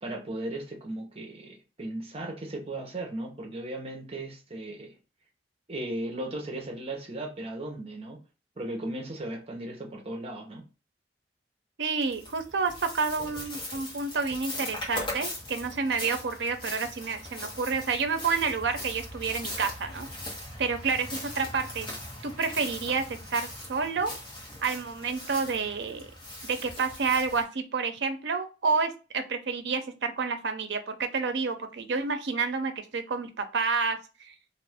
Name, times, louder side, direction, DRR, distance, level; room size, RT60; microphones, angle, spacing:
voice 1, 0.0-4.9 5.7-8.2 8.6-10.6, right 1 dB, 35° right, 0.8 m, -36 dB
voice 2, 11.8-20.1 20.6-21.9 22.2-24.1 24.6-26.1 26.4-34.0, right 4 dB, 75° right, 0.5 m, -29 dB
sound 1, 12.0-27.4, left 1 dB, 30° left, 1.1 m, -40 dB
2.6 x 2.5 x 3.4 m
head